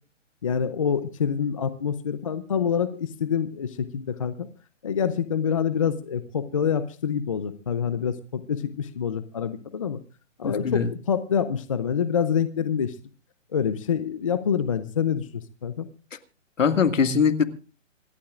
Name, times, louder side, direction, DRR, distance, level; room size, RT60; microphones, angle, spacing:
voice 1, 0.4-4.5 4.8-10.0 10.4-13.0 13.5-15.9, left 7 dB, 25° left, 12 dB, 0.6 m, -26 dB
voice 2, 10.4-10.9 16.6-17.4, left 6 dB, 75° left, 10 dB, 2.0 m, -21 dB
27.5 x 12.0 x 2.5 m, 0.35 s
hypercardioid pair, 160°, 38 cm